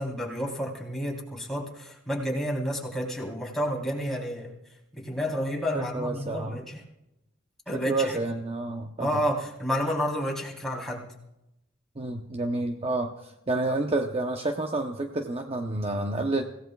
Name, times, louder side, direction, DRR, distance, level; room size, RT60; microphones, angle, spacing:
voice 1, 0.0-4.5 4.9-6.8 7.7-8.2 9.0-11.1, equal, ahead, -4 dB, 3.4 m, -30 dB
voice 2, 5.7-6.6 7.7-9.2 12.0-16.4, right 2 dB, 30° right, 3 dB, 0.8 m, -29 dB
25.0 x 17.0 x 2.3 m, 0.89 s
head